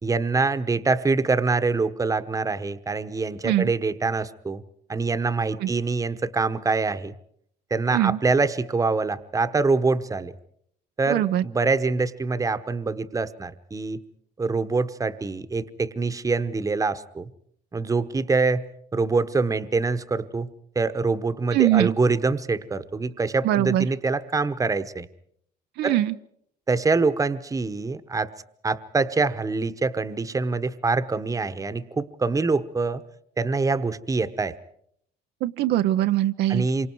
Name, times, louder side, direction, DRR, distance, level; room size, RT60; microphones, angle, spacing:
voice 1, 0.0-4.6 4.9-7.1 7.7-10.3 11.0-14.0 14.4-17.3 17.7-18.6 18.9-20.5 20.7-25.1 25.8-26.0 26.7-28.3 28.6-33.0 33.4-34.5 36.5-36.9, right 4 dB, 20° right, 12 dB, 1.1 m, -25 dB
voice 2, 11.1-11.4 21.5-22.0 23.4-23.9 25.8-26.1 35.4-36.7, right 13 dB, 80° right, 9 dB, 0.8 m, -22 dB
27.5 x 24.5 x 4.7 m, 0.67 s
cardioid pair, 110°, 17 cm